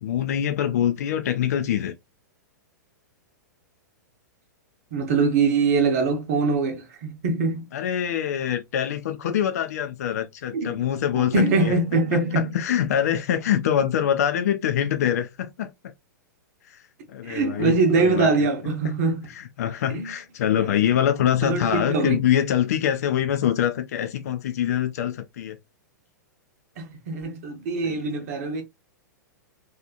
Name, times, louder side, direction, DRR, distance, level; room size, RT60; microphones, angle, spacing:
voice 1, 0.0-1.9 7.7-11.7 12.1-15.7 16.7-16.8 17.1-18.3 19.3-25.6 27.8-28.1, left 10 dB, 55° left, 0.5 m, -24 dB
voice 2, 4.9-7.7 10.5-10.8 11.1-12.5 17.2-19.3 19.9-20.1 20.6-20.7 21.4-22.2 26.8-28.6, right 3 dB, 50° right, 0.9 m, -23 dB
2.8 x 2.4 x 2.3 m
figure-of-eight pair, 105°, 10 cm